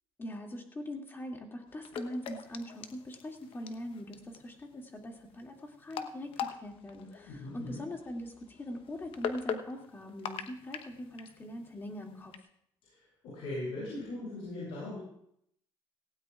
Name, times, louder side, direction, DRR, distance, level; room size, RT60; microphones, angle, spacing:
voice 1, 0.2-12.3, left 1 dB, 25° left, 2 dB, 2.3 m, -42 dB
sound 1, 1.7-12.4, left 7 dB, 70° left, 1.0 m, -43 dB
voice 2, 7.3-7.8 12.8-15.0, left 2 dB, 85° left, -8 dB, 7.0 m, -39 dB
18.0 x 16.5 x 2.4 m, 0.72 s
cardioid pair, 115°, 10 cm